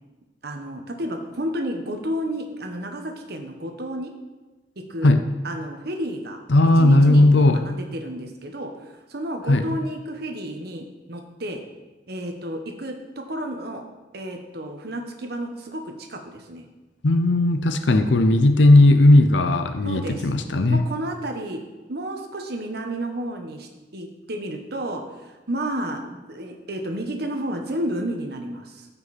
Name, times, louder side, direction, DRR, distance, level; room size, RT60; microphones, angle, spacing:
voice 1, 0.4-4.1 4.9-5.1 5.4-6.4 6.8-11.6 12.1-13.8 14.1-16.7 19.8-20.3 20.7-21.6 21.9-28.9, right 1 dB, 60° right, 4 dB, 1.2 m, -31 dB
voice 2, 6.5-7.7 9.5-9.7 17.0-20.8, left 2 dB, 85° left, 8 dB, 0.7 m, -16 dB
14.5 x 5.5 x 4.2 m, 1.2 s
head